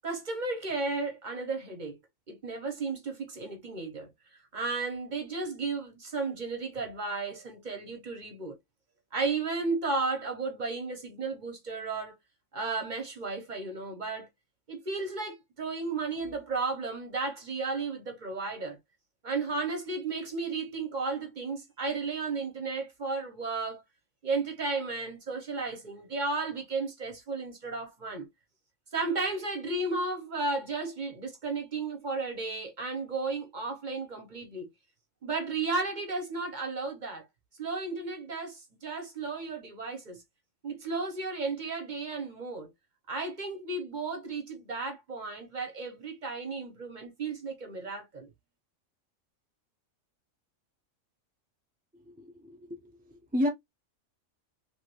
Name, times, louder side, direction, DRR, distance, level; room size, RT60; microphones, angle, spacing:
voice 1, 0.0-2.0 2.3-4.1 4.5-8.6 9.1-12.1 12.5-14.3 14.7-18.8 19.2-23.8 24.2-28.3 28.9-34.7 35.2-37.3 37.6-40.2 40.6-42.7 43.1-48.3, right 3 dB, 40° right, 1.0 m, -34 dB
voice 2, 52.2-52.7 53.3-53.5, left 1 dB, 15° right, 0.3 m, -29 dB
3.3 x 2.6 x 2.9 m
omnidirectional pair, 1.4 m